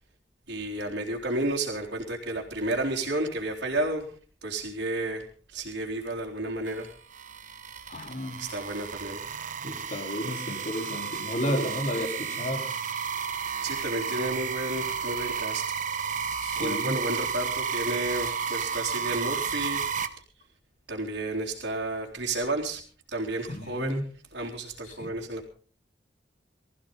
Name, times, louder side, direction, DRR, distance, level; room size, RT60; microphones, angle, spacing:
voice 1, 0.5-4.1 4.4-6.9 8.4-9.2 13.6-15.7 16.6-19.9 20.9-22.8 23.1-24.0 24.3-25.5, right 2 dB, 85° right, -5 dB, 3.5 m, -31 dB
sound 1, 6.7-20.1, right 6 dB, 45° right, 1.2 m, -32 dB
voice 2, 7.9-8.4 9.6-12.7 16.4-16.9 23.5-24.1 24.8-25.1, equal, 45° left, 3 dB, 3.9 m, -32 dB
21.0 x 15.0 x 3.9 m, 0.40 s
head